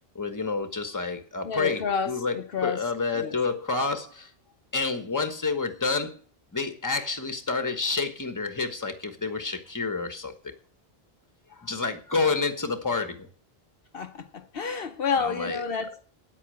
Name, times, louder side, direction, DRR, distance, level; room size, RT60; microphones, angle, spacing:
voice 1, 0.1-2.4 2.6-4.3 4.7-6.2 6.5-10.5 11.6-13.3 15.2-15.6, left 4 dB, 20° left, 1.2 m, -29 dB
voice 2, 1.4-2.8 3.1-3.4 13.9-16.0, left 6 dB, 65° left, 1.0 m, -30 dB
9.2 x 8.5 x 7.7 m
omnidirectional pair, 1.0 m